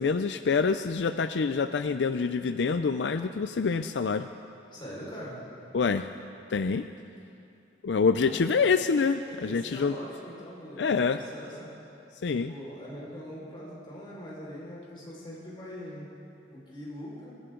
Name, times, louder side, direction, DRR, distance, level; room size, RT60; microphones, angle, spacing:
voice 1, 0.0-4.3 5.7-6.0 6.5-6.9 7.8-9.9 10.8-11.2 12.2-12.5, left 5 dB, 85° left, 10 dB, 0.5 m, -26 dB
voice 2, 4.7-5.4 8.2-8.4 9.2-11.7 12.2-16.1 16.5-17.3, equal, 30° left, -6 dB, 4.9 m, -42 dB
25.5 x 14.5 x 3.8 m, 2.6 s
head